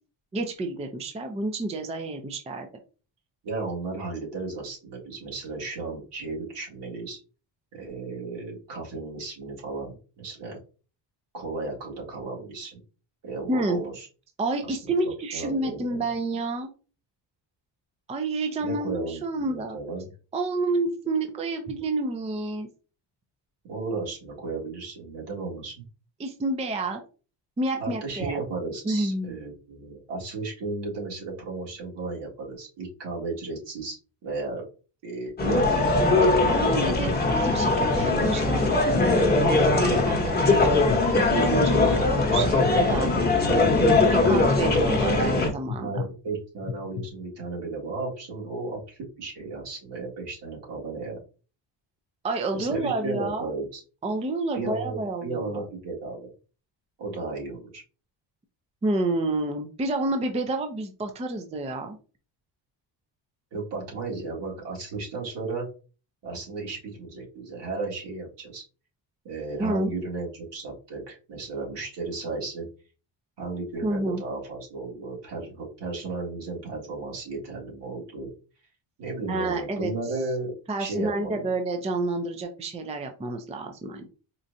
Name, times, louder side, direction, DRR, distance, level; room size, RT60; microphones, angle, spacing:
voice 1, 0.3-2.7 13.5-13.8 14.4-16.7 18.1-19.8 20.3-22.7 26.2-27.0 27.6-28.4 28.8-29.3 36.5-40.8 41.3-43.7 44.3-45.9 52.2-53.6 54.0-55.6 58.8-62.0 69.6-69.9 73.8-74.2 79.3-79.9 80.7-84.1, right 2 dB, 15° right, 5 dB, 0.4 m, -29 dB
voice 2, 3.4-7.2 7.7-10.6 11.3-12.8 13.2-14.1 14.6-16.0 18.6-20.1 23.7-25.7 27.8-34.6 35.0-36.3 43.4-44.3 44.6-51.2 52.5-53.8 54.5-56.3 57.0-57.8 63.5-65.7 66.2-68.6 69.2-72.7 73.4-78.3 79.0-81.5, right 3 dB, 65° right, -3 dB, 2.0 m, -34 dB
sound 1, 35.4-45.5, left 2 dB, 20° left, 0.9 m, -21 dB
sound 2, 36.7-37.2 37.7-38.1 38.6-39.1 39.6-40.0 40.6-41.0 41.6-42.0 42.6-43.0 43.7-44.0 44.7-45.0 45.7-46.1 46.6-47.1, left 7 dB, 50° left, 0.6 m, -34 dB
4.3 x 2.5 x 2.6 m, 0.35 s
cardioid pair, 115°, 46 cm